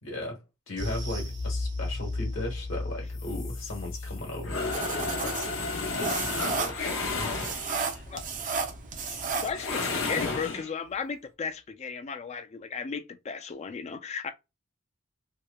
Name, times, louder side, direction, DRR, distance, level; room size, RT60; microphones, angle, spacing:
voice 1, 0.0-5.7 6.0-6.9, left 1 dB, 75° left, 1.2 m, -37 dB
sound 1, 0.8-9.4 9.7-9.9 10.3-10.4, left 2 dB, 60° right, 0.9 m, -37 dB
sound 2, 3.2-8.0 9.5-10.7, left 3 dB, 90° left, 0.8 m, -33 dB
sound 3, 4.7-9.8, right 5 dB, 40° right, 0.5 m, -33 dB
voice 2, 9.1-14.3, left 5 dB, 35° left, 0.3 m, -35 dB
2.9 x 2.1 x 2.2 m
head